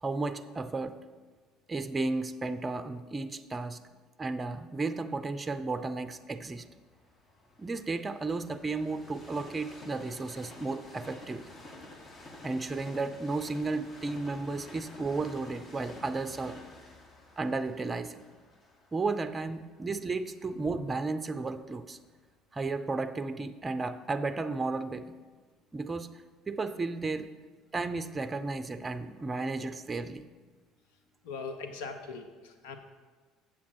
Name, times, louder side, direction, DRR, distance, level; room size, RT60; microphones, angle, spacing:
voice 1, 0.0-1.0 1.7-3.8 4.2-6.6 7.6-11.6 12.4-16.6 17.4-18.2 18.9-22.0 22.5-25.1 25.7-26.1 26.5-27.3 27.7-30.2, right 3 dB, 25° right, 11 dB, 0.5 m, -33 dB
Train, 5.6-21.5 22.1-22.2, left 2 dB, 35° left, 1.4 m, -51 dB
voice 2, 31.2-32.8, left 4 dB, 75° left, 7 dB, 0.9 m, -40 dB
7.3 x 7.2 x 4.6 m, 1.4 s
hypercardioid pair, 65°, 0 cm